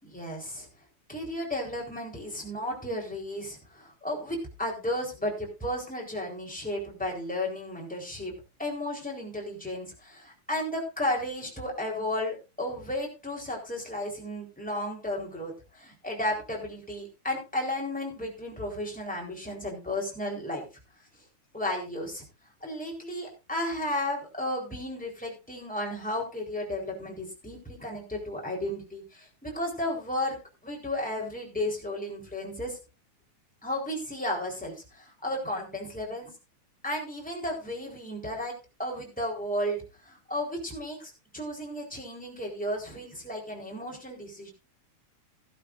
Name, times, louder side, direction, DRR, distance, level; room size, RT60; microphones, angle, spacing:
voice 1, 0.0-0.7 1.1-8.3 8.6-15.5 15.8-20.6 21.5-22.2 22.6-30.4 30.6-32.8 33.6-36.3 36.8-38.5 38.8-44.5, left 1 dB, ahead, -1 dB, 3.7 m, -33 dB
15.5 x 12.0 x 2.6 m, 0.29 s
omnidirectional pair, 3.6 m